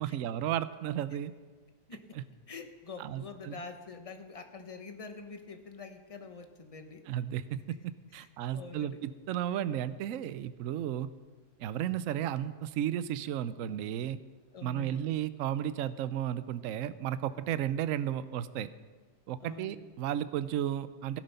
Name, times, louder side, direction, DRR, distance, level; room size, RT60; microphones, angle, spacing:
voice 1, 0.0-1.3 2.2-2.3 3.0-3.6 7.1-11.1 11.6-14.2 14.6-18.7 19.3-21.2, right 11 dB, 65° right, 13 dB, 0.9 m, -34 dB
voice 2, 2.5-7.0 8.1-8.3 8.5-9.0 14.5-15.0 19.4-19.8, left 4 dB, 25° left, 6 dB, 0.9 m, -46 dB
17.0 x 11.0 x 5.6 m, 1.4 s
omnidirectional pair, 1.7 m